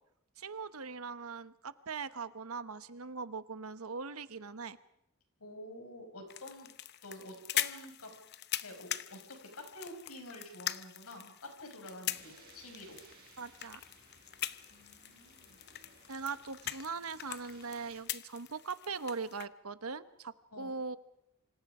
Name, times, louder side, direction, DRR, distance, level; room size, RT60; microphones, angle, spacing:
voice 1, 0.4-4.8 13.4-13.8 16.1-21.0, right 4 dB, 85° right, 13 dB, 1.1 m, -41 dB
voice 2, 5.4-6.7 7.0-8.1 8.6-13.0 14.7-15.6 20.5-20.8, left 1 dB, 90° left, 4 dB, 5.8 m, -49 dB
sound 1, 6.3-19.5, left 12 dB, 50° left, 0.8 m, -42 dB
sound 2, 12.1-18.0, right 4 dB, 45° right, 6.7 m, -61 dB
27.0 x 26.0 x 5.0 m, 0.80 s
head